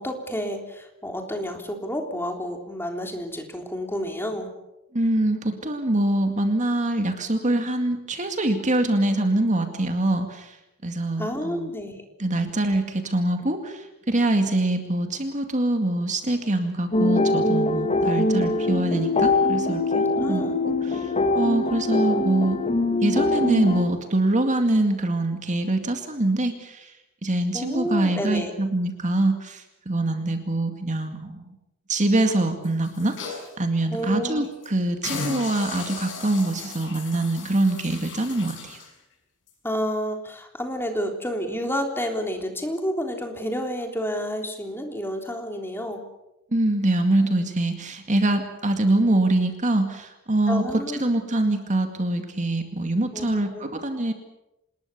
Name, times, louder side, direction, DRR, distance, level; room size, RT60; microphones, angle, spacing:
voice 1, 0.0-4.5 11.2-12.0 20.1-20.5 27.5-28.5 33.9-34.5 39.6-46.0 50.5-51.1 53.1-53.7, equal, 10° left, 3 dB, 3.5 m, -30 dB
voice 2, 4.9-10.6 10.8-11.7 12.2-22.6 23.0-26.9 27.2-31.5 31.9-33.2 33.6-38.8 46.5-50.6 51.0-54.1, right 1 dB, 35° right, 6 dB, 2.2 m, -24 dB
sound 1, 16.9-23.8, left 2 dB, 30° left, 2.4 m, -23 dB
sound 2, 32.6-33.5 34.0-34.1 34.4-34.7 35.0-38.9 39.5-39.6, left 4 dB, 60° left, 6.5 m, -36 dB
27.0 x 20.5 x 6.9 m, 0.90 s
head